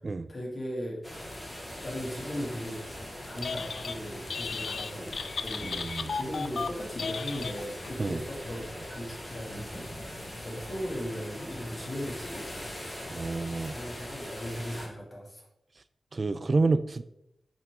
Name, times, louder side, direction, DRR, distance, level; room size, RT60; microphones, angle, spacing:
voice 1, 0.3-1.0 1.6-2.8 3.2-9.9 10.1-12.9 13.7-15.5, equal, 40° left, -2 dB, 2.5 m, -38 dB
sound 1, 1.0-14.9, left 1 dB, 25° left, 2.2 m, -41 dB
Telephone, 3.2-4.0 4.3-8.0, left 5 dB, 75° left, 0.3 m, -35 dB
voice 2, 5.6-6.1 8.0-8.2 13.1-13.7 16.1-17.0, right 3 dB, 45° right, 14 dB, 0.3 m, -28 dB
7.0 x 5.6 x 3.6 m, 0.79 s
wide cardioid pair, 80°, 0 cm